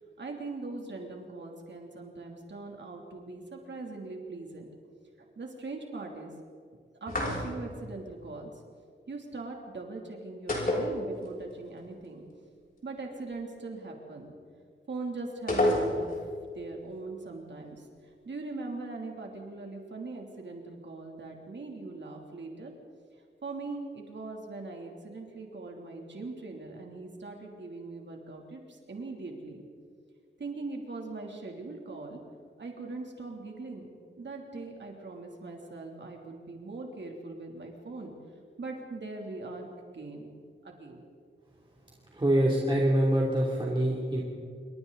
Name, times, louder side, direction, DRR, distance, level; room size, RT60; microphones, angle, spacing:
voice 1, 0.2-4.7 5.2-6.3 7.0-8.5 9.1-12.2 12.8-14.3 14.9-16.1 16.5-22.7 23.4-29.6 30.4-32.2 32.6-33.9 34.2-38.1 38.6-40.3 40.6-41.0, right 3 dB, 65° right, 1 dB, 3.0 m, -41 dB
sound 1, 7.1-7.8 10.5-11.5 11.8-11.9 15.5-16.3, left 1 dB, 45° left, 5.9 m, -28 dB
voice 2, 42.1-44.2, right 1 dB, 25° right, -3 dB, 3.0 m, -25 dB
27.5 x 24.5 x 4.0 m, 2.2 s
wide cardioid pair, 130°, 20 cm